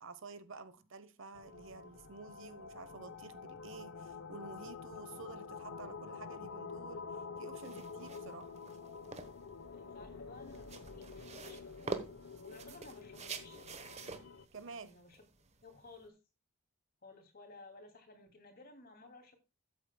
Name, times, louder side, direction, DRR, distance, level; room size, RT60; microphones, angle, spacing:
voice 1, 0.0-8.6 14.5-14.9, right 4 dB, 60° right, 1.0 m, -51 dB
sound 1, 1.3-14.4, left 5 dB, 80° left, 0.9 m, -48 dB
sound 2, 7.5-16.1, right 4 dB, 30° right, 1.1 m, -47 dB
voice 2, 9.7-13.7 14.7-15.2 15.6-16.2 17.0-19.4, left 3 dB, 45° left, 2.7 m, -56 dB
13.0 x 8.4 x 2.3 m
head